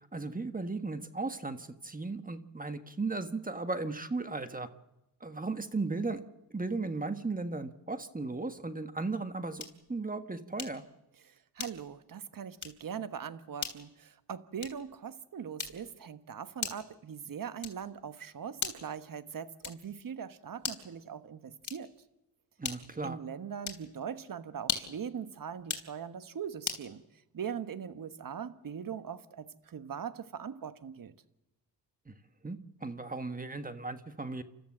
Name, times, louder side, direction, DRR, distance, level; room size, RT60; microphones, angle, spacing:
voice 1, 0.0-4.7 5.2-6.2 6.5-9.6 9.9-10.8 22.6-23.2 32.1-32.2 32.4-34.4, right 3 dB, 20° right, 9 dB, 1.5 m, -36 dB
sound 1, 9.6-9.9 10.6-10.9 11.6-12.0 12.6-12.9 13.6-13.9 14.6-14.9 15.6-16.0 16.6-17.0 17.6-18.0 18.6-19.0 19.6-20.0 20.6-21.0 21.6-22.0 22.6-23.0 23.6-23.9 24.6-25.0 25.6-25.9 26.6-26.9, left 6 dB, 45° left, 3.5 m, -38 dB
voice 2, 11.2-21.9 23.0-27.0 27.3-31.1, right 7 dB, 50° right, 11 dB, 1.3 m, -41 dB
29.0 x 13.5 x 7.5 m, 0.96 s
cardioid pair, 70°, 41 cm